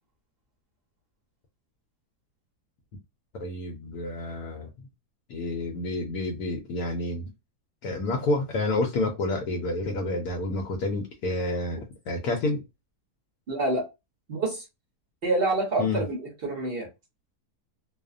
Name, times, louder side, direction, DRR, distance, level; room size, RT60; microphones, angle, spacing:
voice 1, 3.4-4.9 5.3-7.3 7.8-12.6 15.8-16.1, left 2 dB, 75° left, 1.1 m, -29 dB
voice 2, 13.5-13.9 14.3-14.6 15.2-16.9, right 2 dB, 50° right, 0.8 m, -27 dB
2.7 x 2.0 x 2.4 m
omnidirectional pair, 1.7 m